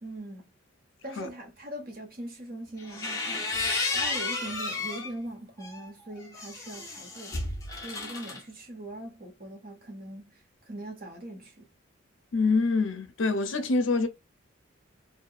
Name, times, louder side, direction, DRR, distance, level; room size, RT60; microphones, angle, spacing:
voice 1, 0.0-0.5 1.0-7.5 7.8-11.7, right 1 dB, 45° right, 0.9 m, -41 dB
sound 1, 2.8-5.1 5.6-8.4, left 3 dB, 15° left, 0.7 m, -32 dB
voice 2, 12.3-14.1, left 3 dB, 65° left, 0.5 m, -25 dB
2.7 x 2.2 x 2.3 m
head